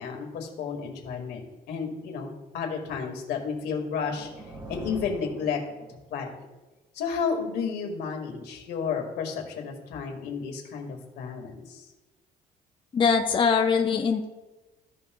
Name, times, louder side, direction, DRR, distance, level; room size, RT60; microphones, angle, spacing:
voice 1, 0.0-4.3 4.7-5.6 6.1-6.3 6.9-11.8, left 6 dB, 75° left, 2 dB, 1.9 m, -32 dB
sound 1, 3.5-6.2, right 1 dB, 30° right, 2.7 m, -44 dB
voice 2, 12.9-14.2, left 6 dB, 30° left, 3 dB, 0.7 m, -22 dB
15.0 x 5.5 x 2.3 m, 1.1 s
cardioid pair, 110°, 17 cm